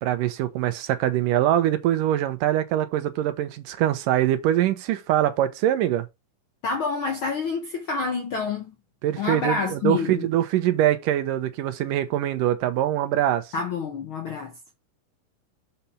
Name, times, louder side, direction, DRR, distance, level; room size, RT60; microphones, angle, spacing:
voice 1, 0.0-6.1 9.0-13.5, right 12 dB, 80° right, 2.6 m, -23 dB
voice 2, 6.6-8.7 9.2-10.3 13.5-14.5, left 4 dB, 65° left, 1.3 m, -28 dB
7.0 x 5.1 x 4.4 m
omnidirectional pair, 3.8 m